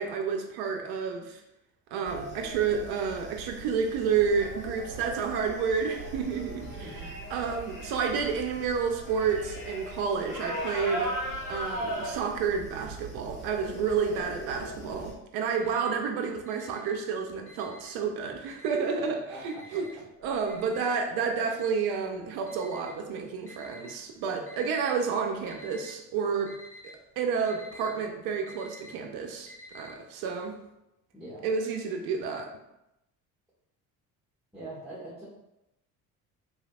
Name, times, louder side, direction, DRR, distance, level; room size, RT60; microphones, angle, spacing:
voice 1, 0.0-1.4 1.9-6.6 7.3-11.1 11.5-19.8 20.2-26.5 26.8-30.6 31.4-32.5, right 6 dB, 55° right, 3 dB, 0.6 m, -30 dB
sound 1, 2.0-15.1, right 1 dB, 75° left, 1.2 m, -38 dB
voice 2, 6.6-7.1 19.3-19.8 31.1-31.5 34.5-35.3, right 1 dB, ahead, -11 dB, 1.4 m, -43 dB
Alarm, 15.5-16.1 16.4-18.1 18.5-19.1 19.5-23.9 24.5-25.1 25.3-26.0 26.2-29.9, left 1 dB, 30° left, 0.8 m, -50 dB
3.1 x 2.9 x 2.4 m, 0.87 s
hypercardioid pair, 55°, 44 cm